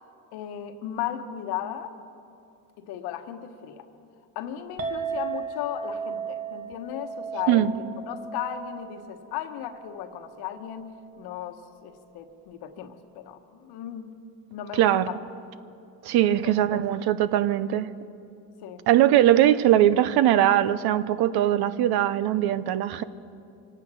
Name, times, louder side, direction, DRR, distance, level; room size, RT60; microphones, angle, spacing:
voice 1, 0.3-1.9 2.8-3.8 4.3-7.7 8.1-14.1 14.5-15.2 16.3-16.8 18.6-18.9, left 10 dB, 80° left, 7 dB, 1.3 m, -36 dB
Chink clink, 4.8-11.1, right 5 dB, 40° right, 1.7 m, -36 dB
voice 2, 14.7-15.1 16.0-17.9 18.9-23.0, right 12 dB, 70° right, 15 dB, 0.8 m, -21 dB
25.0 x 9.2 x 6.2 m, 2.6 s
cardioid pair, 95°, 38 cm